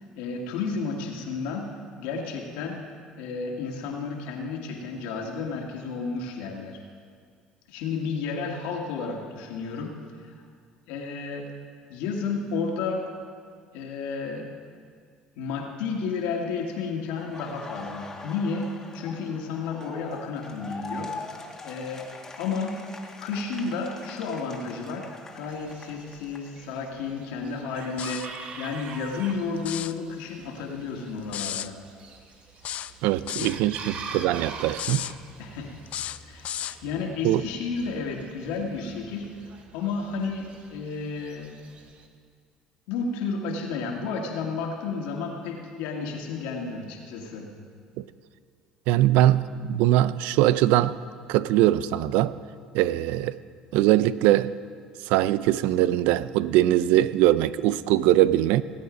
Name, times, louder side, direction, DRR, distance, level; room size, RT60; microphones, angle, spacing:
voice 1, 0.2-2.8 3.2-6.8 7.7-10.0 10.2-10.3 10.9-11.5 11.9-13.0 13.7-14.5 15.4-21.1 21.6-22.1 22.4-22.8 23.2-25.1 25.3-28.3 28.6-31.8 33.4-33.5 35.4-35.8 36.2-36.5 36.8-39.3 39.7-41.7 42.9-47.5, left 4 dB, 80° left, 1 dB, 2.2 m, -32 dB
Laughter, 17.2-27.0 27.3-29.3, left 3 dB, 20° left, 1.8 m, -43 dB
Chicken rooster, 25.5-42.1, right 5 dB, 50° right, 1.4 m, -45 dB
sound 1, 28.0-28.4 29.6-30.0 31.3-31.7 32.6-33.6 34.7-35.1 35.9-36.8, left 12 dB, 55° left, 0.4 m, -33 dB
voice 2, 33.0-35.0 37.2-37.4 48.0-48.1 48.9-50.9 51.3-52.3 52.7-53.4 53.7-54.5 55.1-58.6, right 14 dB, 75° right, 16 dB, 0.4 m, -21 dB
18.0 x 8.8 x 5.3 m, 2.1 s
supercardioid pair, 85°, 3 cm